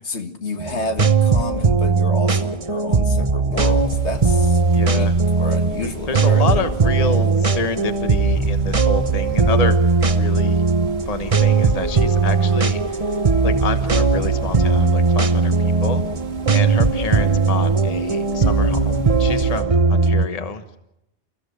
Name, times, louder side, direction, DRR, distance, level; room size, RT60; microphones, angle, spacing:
voice 1, 0.0-5.1 5.4-6.7, left 3 dB, 75° left, 6 dB, 2.2 m, -30 dB
sound 1, 0.6-20.3, right 4 dB, 30° right, 1.0 m, -18 dB
sound 2, 3.7-19.6, right 2 dB, 65° right, 1.9 m, -38 dB
voice 2, 4.7-5.2 5.8-9.8 10.1-10.6 11.1-13.0 13.4-16.0 16.5-20.8, left 4 dB, 35° left, 9 dB, 1.2 m, -28 dB
30.0 x 15.5 x 6.6 m, 0.87 s
omnidirectional pair, 1.2 m